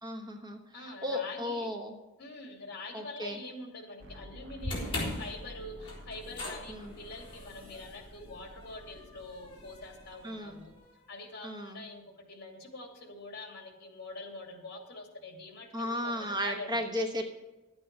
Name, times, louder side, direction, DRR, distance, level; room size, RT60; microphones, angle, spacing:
voice 1, 0.0-1.9 2.9-3.4 6.7-6.9 10.2-10.6 11.4-11.8 15.7-17.2, left 1 dB, 20° right, 4 dB, 1.1 m, -35 dB
voice 2, 0.7-1.7 2.2-10.7 11.1-16.9, left 2 dB, 50° left, 4 dB, 2.5 m, -45 dB
sound 1, 4.0-10.8, equal, 60° right, 1.3 m, -51 dB
sound 2, 4.6-10.9, left 1 dB, 25° left, 3.9 m, -41 dB
11.5 x 8.7 x 6.0 m, 1.1 s
head